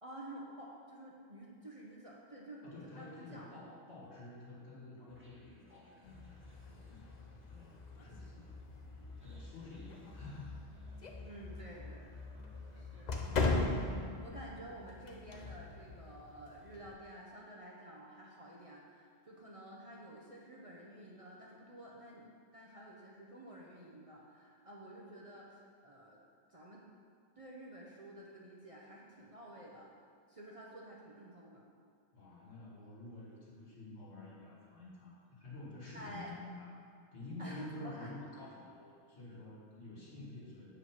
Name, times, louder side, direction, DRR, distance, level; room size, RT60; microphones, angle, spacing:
voice 1, 0.0-3.5 11.2-12.1 12.7-13.7 14.1-26.2 26.5-26.8 27.4-29.9 30.3-31.6 35.9-36.3 37.4-38.1, right 1 dB, 30° right, -4 dB, 0.9 m, -51 dB
voice 2, 2.6-8.5 9.2-10.5 15.3-15.4 32.1-36.7 37.1-40.8, left 2 dB, 60° left, -6 dB, 2.2 m, -50 dB
sound 1, 5.1-14.3, equal, 10° right, 1.0 m, -56 dB
sound 2, 6.0-16.9, left 3 dB, 45° left, 0.6 m, -40 dB
7.4 x 5.0 x 6.0 m, 2.3 s
omnidirectional pair, 1.3 m